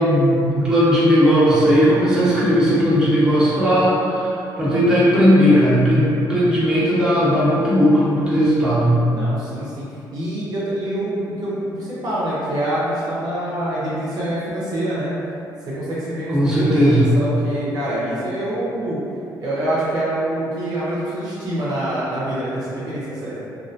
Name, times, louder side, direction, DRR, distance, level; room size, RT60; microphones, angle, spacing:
voice 1, 0.0-4.3 4.6-9.0 16.3-17.0, equal, 10° right, -11 dB, 0.8 m, -16 dB
voice 2, 9.1-15.1 15.7-19.0 19.4-23.4, right 1 dB, 55° right, -8 dB, 0.6 m, -25 dB
2.3 x 2.1 x 2.6 m, 2.8 s
cardioid pair, 105°, 8 cm